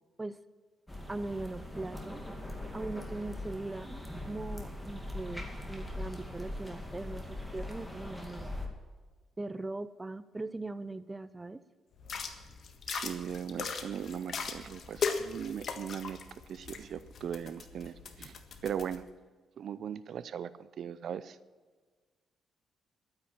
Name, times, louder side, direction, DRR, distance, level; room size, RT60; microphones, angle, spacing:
sound 1, 0.9-8.7, left 1 dB, 5° left, 2.3 m, -41 dB
voice 1, 1.1-2.2 2.7-8.7 9.4-11.6, right 2 dB, 20° right, 14 dB, 0.6 m, -40 dB
sound 2, 12.0-19.0, left 5 dB, 55° left, 1.5 m, -39 dB
voice 2, 12.9-18.4 18.6-19.0 19.6-21.4, right 8 dB, 60° right, 15 dB, 0.6 m, -39 dB
12.0 x 9.7 x 7.4 m, 1.4 s
cardioid pair, 90°, 0 cm